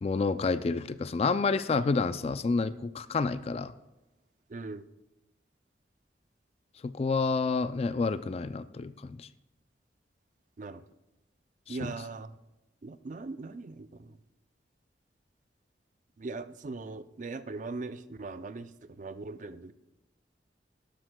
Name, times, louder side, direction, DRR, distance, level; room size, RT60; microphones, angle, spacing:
voice 1, 0.0-3.7 6.8-9.3 11.7-11.9, left 4 dB, 35° left, 14 dB, 0.3 m, -29 dB
voice 2, 4.5-4.8 10.6-10.8 11.7-12.4 12.8-14.2 16.2-19.7, right 3 dB, 45° right, 12 dB, 0.4 m, -40 dB
12.5 x 12.0 x 2.2 m, 0.98 s
head